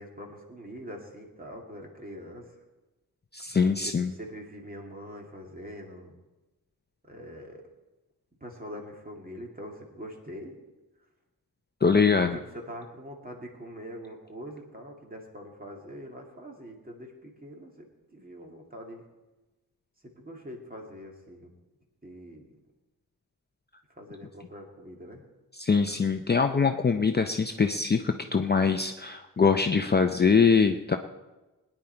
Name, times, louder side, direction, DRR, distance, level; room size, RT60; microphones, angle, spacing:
voice 1, 0.0-2.5 3.8-6.2 7.1-7.6 8.4-10.6 12.3-17.9 18.1-19.0 20.0-21.5 22.0-22.5 24.0-25.2, equal, 25° right, 1 dB, 2.2 m, -43 dB
voice 2, 3.3-4.1 11.8-12.4 25.6-31.0, left 5 dB, 30° left, 6 dB, 0.5 m, -23 dB
20.5 x 10.0 x 4.5 m, 1.1 s
wide cardioid pair, 165°, 35 cm